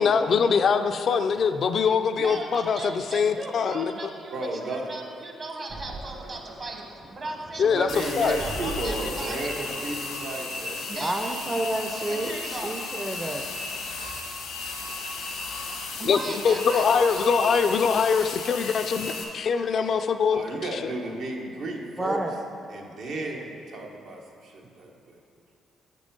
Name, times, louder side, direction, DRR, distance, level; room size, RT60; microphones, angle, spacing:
voice 1, 0.0-3.9 7.6-8.4 16.0-20.4 20.7-20.9, left 6 dB, 55° left, 8 dB, 0.4 m, -23 dB
voice 2, 2.2-6.9 7.1-9.6 10.9-11.3 12.1-12.7 16.0-17.8, right 2 dB, 40° right, 2 dB, 1.1 m, -37 dB
voice 3, 4.3-4.8 6.7-6.8 7.6-11.3 14.1-14.2 15.5-15.8 20.3-22.2 22.7-25.2, right 2 dB, 75° right, 0 dB, 1.1 m, -34 dB
sound 1, 5.7-10.7, right 1 dB, 60° right, 1.8 m, -40 dB
sound 2, 7.9-19.2, left 3 dB, 90° left, 1.0 m, -35 dB
voice 4, 11.0-13.5 22.0-22.3, right 1 dB, 15° right, 4 dB, 0.5 m, -30 dB
7.2 x 5.3 x 5.3 m, 2.6 s
cardioid pair, 90°, 0 cm